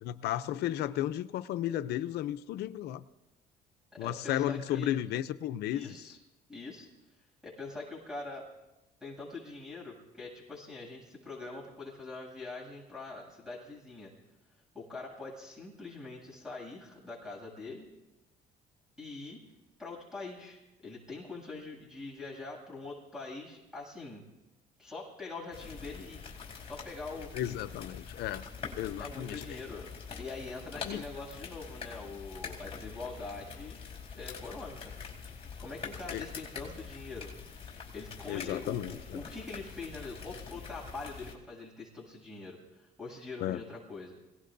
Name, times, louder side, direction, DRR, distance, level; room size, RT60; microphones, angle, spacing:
voice 1, 0.0-3.0 4.0-6.0 27.3-28.5 28.8-29.6 30.8-31.0 36.1-36.3 38.3-39.2 43.4-43.6, left 12 dB, 75° left, 12 dB, 0.6 m, -34 dB
voice 2, 4.0-5.0 5.7-6.2 6.5-6.9 7.4-8.5 9.0-14.1 14.7-17.9 19.0-19.4 19.8-24.2 24.8-26.2 26.7-27.3 29.0-29.9 30.2-33.8 34.1-34.9 35.6-37.3 37.9-44.2, left 3 dB, 5° right, -1 dB, 7.7 m, -43 dB
sound 1, 25.5-41.3, left 6 dB, 35° left, 4.2 m, -45 dB
28.5 x 18.0 x 2.6 m, 1.0 s
cardioid pair, 110°, 17 cm